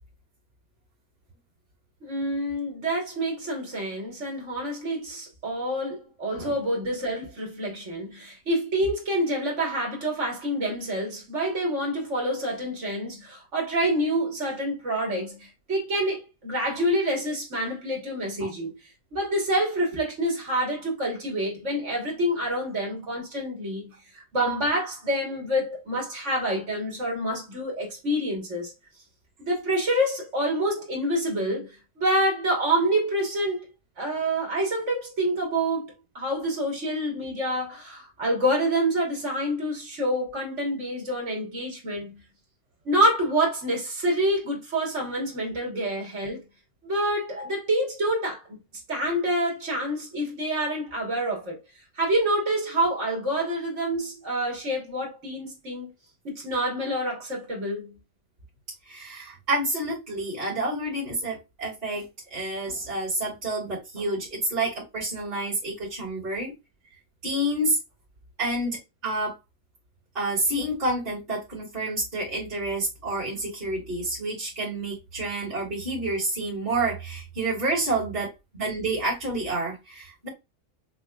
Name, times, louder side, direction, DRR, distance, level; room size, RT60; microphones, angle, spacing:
voice 1, 2.0-18.8 19.1-28.7 29.4-31.7 32.0-33.7 34.0-42.2 42.9-46.4 46.8-48.6 48.9-51.6 52.0-55.9 56.2-58.0, right 1 dB, 55° right, 1.7 m, -27 dB
voice 2, 58.9-66.5 67.2-67.8 68.4-69.3 70.1-80.3, right 2 dB, 40° right, 2.1 m, -29 dB
6.2 x 2.2 x 2.3 m
omnidirectional pair, 1.5 m